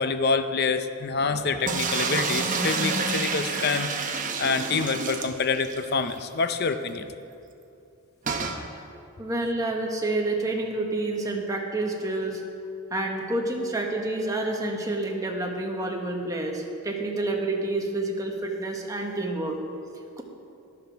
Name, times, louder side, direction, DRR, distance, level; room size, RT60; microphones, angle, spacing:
voice 1, 0.0-3.9 4.4-7.1, left 4 dB, 45° left, 10 dB, 0.6 m, -26 dB
sound 1, 1.7-5.8 6.2-6.3 6.5-6.6 8.3-8.6, right 4 dB, 35° right, 0.9 m, -28 dB
voice 2, 9.2-12.4 12.9-19.6, right 2 dB, 15° right, 0 dB, 1.2 m, -28 dB
12.5 x 11.0 x 4.7 m, 2.7 s
head